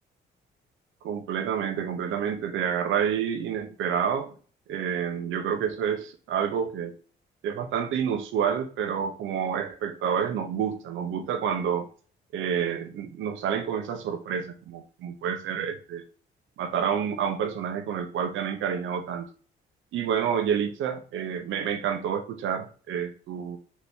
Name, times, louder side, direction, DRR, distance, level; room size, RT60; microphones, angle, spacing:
voice 1, 1.0-4.3 4.7-6.9 7.4-11.9 12.3-16.0 16.6-19.2 19.9-23.6, right 8 dB, 80° right, 0.8 m, -29 dB
4.1 x 2.9 x 3.5 m
cardioid pair, 90°, 20 cm